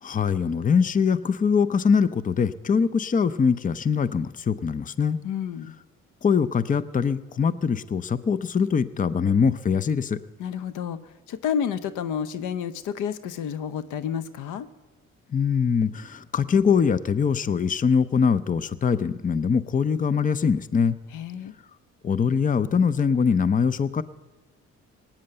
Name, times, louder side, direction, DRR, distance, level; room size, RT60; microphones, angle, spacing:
voice 1, 0.0-5.2 6.2-10.2 15.3-21.0 22.0-24.0, left 6 dB, 25° left, 16 dB, 0.6 m, -23 dB
voice 2, 5.2-5.8 10.4-14.7 21.1-21.5, left 8 dB, 90° left, 13 dB, 0.8 m, -30 dB
19.0 x 8.9 x 7.8 m, 1.2 s
cardioid pair, 90°, 30 cm